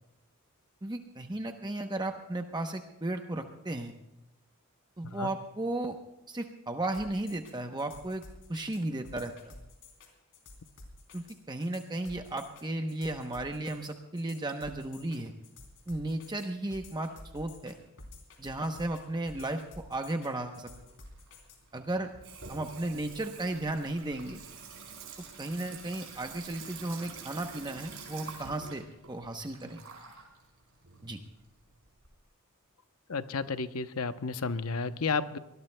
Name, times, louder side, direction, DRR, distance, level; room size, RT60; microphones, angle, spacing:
voice 1, 0.8-3.9 5.0-6.0 6.3-8.2 8.5-9.3 11.1-15.3 15.9-17.8 18.4-20.7 21.7-22.1 22.5-24.4 25.4-29.8 31.0-31.2, right 2 dB, 20° right, 5 dB, 0.8 m, -35 dB
sound 1, 6.9-21.6, left 2 dB, 60° left, 3.3 m, -51 dB
Water tap faucet / Sink (filling or washing), 20.4-32.1, right 5 dB, 75° right, 5.1 m, -48 dB
voice 2, 33.1-35.4, left 4 dB, 85° left, 11 dB, 0.8 m, -32 dB
24.0 x 19.5 x 2.2 m, 0.94 s
head